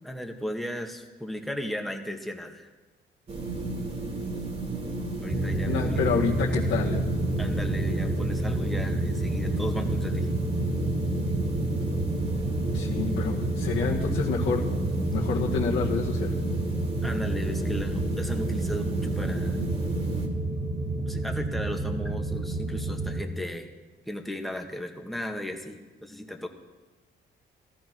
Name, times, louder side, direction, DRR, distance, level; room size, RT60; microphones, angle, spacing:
voice 1, 0.0-2.7 5.2-6.0 7.4-10.3 17.0-19.6 21.0-23.7 24.1-26.5, equal, ahead, 2 dB, 1.9 m, -36 dB
sound 1, 3.3-20.3, right 2 dB, 30° right, 2.9 m, -33 dB
sound 2, 5.3-23.2, right 2 dB, 65° right, 5.5 m, -29 dB
voice 2, 5.7-7.0 12.7-14.6 15.1-16.4, left 6 dB, 70° left, -4 dB, 1.9 m, -28 dB
15.0 x 13.5 x 6.2 m, 1.2 s
cardioid pair, 90°, 20 cm